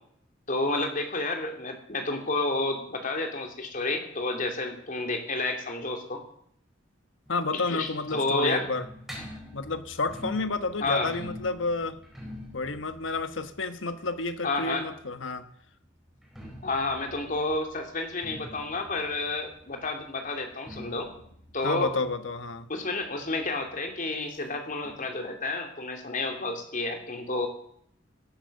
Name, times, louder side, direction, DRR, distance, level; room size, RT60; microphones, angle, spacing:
voice 1, 0.5-6.2 7.5-7.9 8.1-8.7 10.8-11.1 14.4-14.8 16.6-21.1 21.5-21.9 22.7-27.5, left 2 dB, 45° left, 4 dB, 2.8 m, -30 dB
voice 2, 7.3-8.8 9.5-12.0 12.5-15.4 21.6-22.7, left 3 dB, 85° left, 10 dB, 1.3 m, -30 dB
sound 1, 7.3-15.0 16.1-23.5 23.7-23.8 24.1-24.2 24.8-24.9, left 1 dB, ahead, 4.4 m, -45 dB
17.5 x 10.5 x 6.6 m, 0.67 s
head